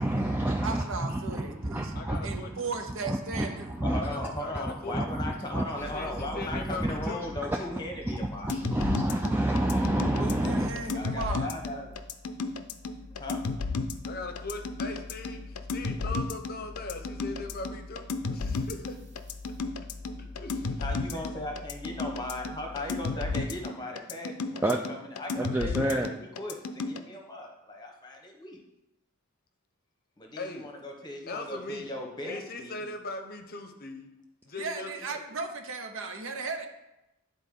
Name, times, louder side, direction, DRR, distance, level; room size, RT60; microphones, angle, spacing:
voice 1, 0.0-4.3 4.9-5.7 6.2-7.6 8.1-10.7 24.6-24.8 25.4-26.1, right 1 dB, 10° right, 1 dB, 0.3 m, -29 dB
voice 2, 0.6-1.9 2.2-3.7 10.2-11.5 34.6-36.7, right 3 dB, 60° right, 6 dB, 0.7 m, -36 dB
voice 3, 1.9-2.7 4.0-5.0 5.8-7.3 14.1-19.0 20.4-20.8 30.4-30.7 31.3-31.9 32.3-34.1 34.4-35.2, left 2 dB, 45° left, 6 dB, 0.7 m, -40 dB
voice 4, 3.7-9.1 10.9-11.9 13.1-13.4 20.8-28.6 30.2-32.8, left 1 dB, 20° left, 1 dB, 1.0 m, -38 dB
sound 1, 5.8-23.5, left 2 dB, 30° right, 0.9 m, -46 dB
sound 2, 8.5-27.0, left 3 dB, 85° left, 0.5 m, -33 dB
10.5 x 4.0 x 3.7 m, 0.94 s
head